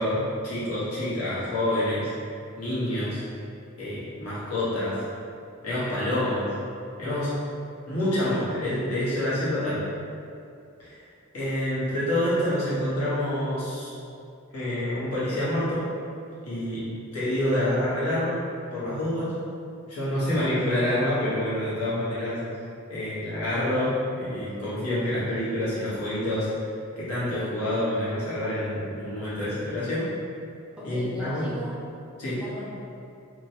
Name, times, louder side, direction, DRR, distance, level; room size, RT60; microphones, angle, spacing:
voice 1, 0.0-2.1 2.6-3.2 3.8-4.9 5.6-6.4 7.0-7.3 7.9-9.8 10.8-10.9 11.3-13.9 14.5-15.8 16.4-16.8 17.1-18.4 18.7-19.3 19.9-22.4 22.9-26.5 27.0-30.0 30.8-31.4 32.2-32.3, left 1 dB, 85° left, -11 dB, 1.1 m, -27 dB
voice 2, 30.8-31.8 32.2-32.7, equal, 5° right, -9 dB, 0.5 m, -38 dB
2.9 x 2.2 x 2.8 m, 2.6 s
head